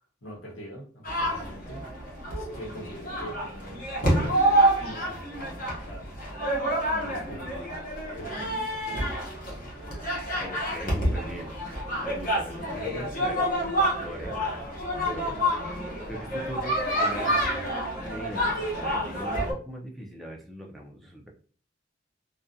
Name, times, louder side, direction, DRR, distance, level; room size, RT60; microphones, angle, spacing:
voice 1, 0.2-1.8 2.4-4.4 4.8-5.3 5.8-6.4 7.0-7.8 8.1-9.2, equal, 85° left, -1 dB, 1.0 m, -43 dB
sound 1, 1.0-19.5, right 1 dB, 45° left, 0.8 m, -28 dB
voice 2, 10.4-11.6 12.0-13.7 14.0-14.3 15.1-15.5 16.1-17.5 18.0-21.3, equal, ahead, -2 dB, 0.4 m, -40 dB
2.4 x 2.2 x 2.6 m, 0.43 s
head